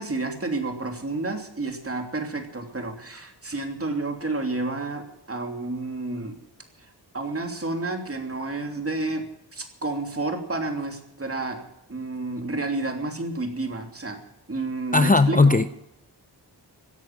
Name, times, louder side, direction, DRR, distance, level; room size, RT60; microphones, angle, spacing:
voice 1, 0.0-6.4 6.8-11.6 11.9-14.2 14.5-15.6, right 2 dB, 35° right, 4 dB, 3.1 m, -30 dB
voice 2, 14.9-15.7, left 3 dB, 20° left, 11 dB, 0.6 m, -17 dB
17.0 x 10.5 x 7.6 m, 0.85 s
wide cardioid pair, 95°, 42 cm